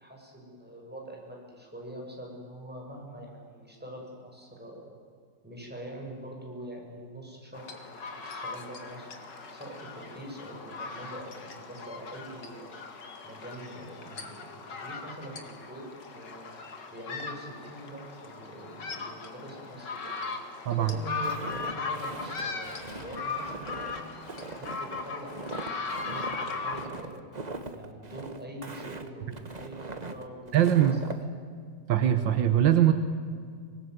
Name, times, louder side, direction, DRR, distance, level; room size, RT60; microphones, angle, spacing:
voice 1, 0.0-5.0 5.4-9.1 9.5-12.8 13.2-15.9 16.1-16.5 16.9-20.4 20.8-24.1 24.5-27.2 27.7-30.8, right 1 dB, 5° right, -1 dB, 6.3 m, -44 dB
sound 1, 7.5-26.9, left 4 dB, 70° left, 2.8 m, -38 dB
voice 2, 20.7-21.0 30.5-31.0 31.9-32.9, right 11 dB, 90° right, 8 dB, 1.8 m, -22 dB
Walk footsteps, 21.2-31.2, right 3 dB, 25° right, 1.3 m, -41 dB
24.5 x 19.5 x 9.4 m, 2.1 s
omnidirectional pair, 2.0 m